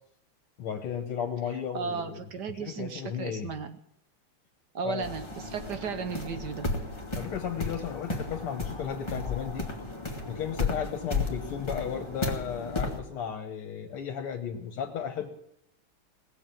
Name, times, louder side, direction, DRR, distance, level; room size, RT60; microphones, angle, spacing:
voice 1, 0.6-2.2 2.5-3.5 4.8-5.1 7.2-9.7 10.3-15.3, left 8 dB, 75° left, 4 dB, 2.1 m, -34 dB
voice 2, 1.7-3.8 4.7-6.7, right 5 dB, 60° right, 9 dB, 1.2 m, -35 dB
sound 1, 5.0-13.0, left 3 dB, 15° left, 1.8 m, -34 dB
Bass guitar, 5.4-11.6, right 2 dB, 85° right, 3.3 m, -53 dB
18.5 x 7.6 x 9.0 m, 0.79 s
omnidirectional pair, 2.4 m